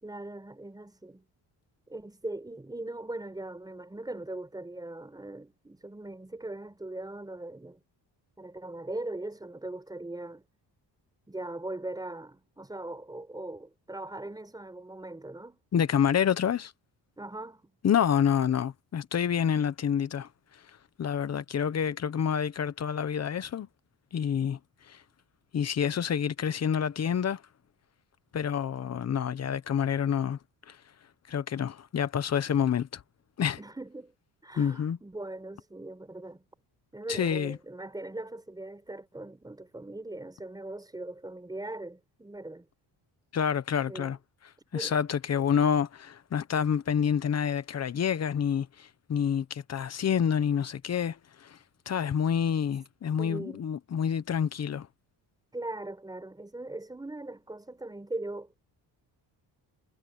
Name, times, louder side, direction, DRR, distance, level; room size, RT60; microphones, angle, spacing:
voice 1, 0.0-1.3 1.9-7.8 8.4-10.4 11.3-15.6 17.2-17.7 33.6-34.1 34.4-36.4 36.9-42.7 43.9-44.1 44.7-45.0 53.2-53.7 55.5-58.6, right 2 dB, 10° right, 4.3 m, -40 dB
voice 2, 15.7-16.7 17.8-20.3 21.0-23.7 24.1-24.6 24.9-25.0 25.5-27.4 28.3-30.4 30.7-30.8 31.3-33.0 33.4-33.6 34.6-35.0 37.1-37.6 43.3-44.2 44.7-51.6 51.9-54.9, left 8 dB, 35° left, 0.9 m, -28 dB
cardioid pair, 175°, 43 cm